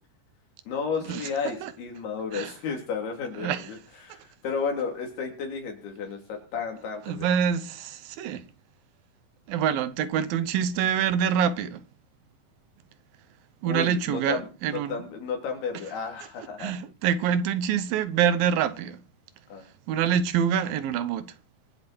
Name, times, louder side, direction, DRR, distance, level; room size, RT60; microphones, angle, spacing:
voice 1, 0.7-3.8 4.0-7.3 13.7-16.8 19.5-19.7, left 5 dB, 85° left, 5.3 m, -33 dB
voice 2, 3.4-3.7 7.1-8.4 9.5-11.8 13.6-15.0 16.6-19.0 19.9-21.3, right 8 dB, 75° right, 2.6 m, -26 dB
24.0 x 8.1 x 4.4 m
omnidirectional pair, 4.4 m